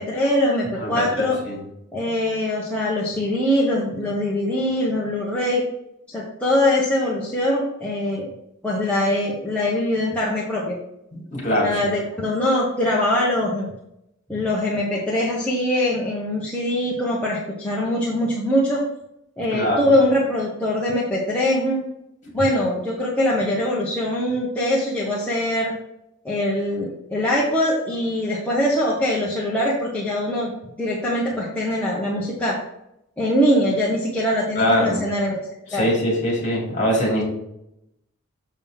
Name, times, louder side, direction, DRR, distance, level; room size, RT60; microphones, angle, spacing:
voice 1, 0.0-1.4 1.9-5.6 6.1-8.3 8.6-10.7 11.6-13.7 14.3-18.8 19.4-21.8 22.3-25.7 26.2-30.5 30.8-32.6 33.2-35.4 35.7-35.8, left 1 dB, 5° left, -6 dB, 1.2 m, -22 dB
voice 2, 0.6-1.6 11.1-11.8 19.5-19.9 34.6-35.0 35.7-37.2, equal, 35° left, -2 dB, 2.9 m, -22 dB
7.1 x 6.5 x 3.7 m, 0.82 s
head